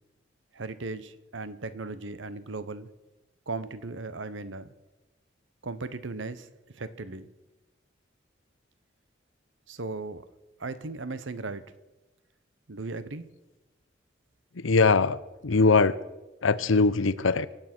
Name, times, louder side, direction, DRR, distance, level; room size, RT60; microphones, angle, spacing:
voice 1, 0.5-2.9 3.5-4.7 5.6-6.5 6.7-7.3 9.7-10.2 10.6-11.6 12.7-13.3, right 3 dB, 75° right, 1.0 m, -37 dB
voice 2, 14.5-16.0 16.4-17.5, left 4 dB, 85° left, 0.7 m, -22 dB
24.5 x 9.0 x 6.1 m
head